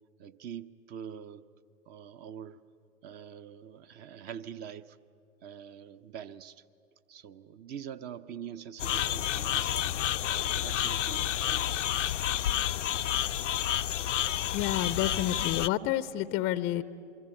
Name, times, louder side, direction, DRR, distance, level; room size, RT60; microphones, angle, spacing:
voice 1, 0.2-1.5 1.9-2.6 3.0-5.0 5.4-6.6 7.1-9.9 10.3-12.2, right 8 dB, 25° right, 15 dB, 0.7 m, -44 dB
sound 1, 8.8-15.7, left 11 dB, 70° left, 0.6 m, -30 dB
voice 2, 14.5-16.8, left 13 dB, 25° left, 15 dB, 0.6 m, -29 dB
26.5 x 24.0 x 8.8 m, 2.5 s
figure-of-eight pair, 100°, 38 cm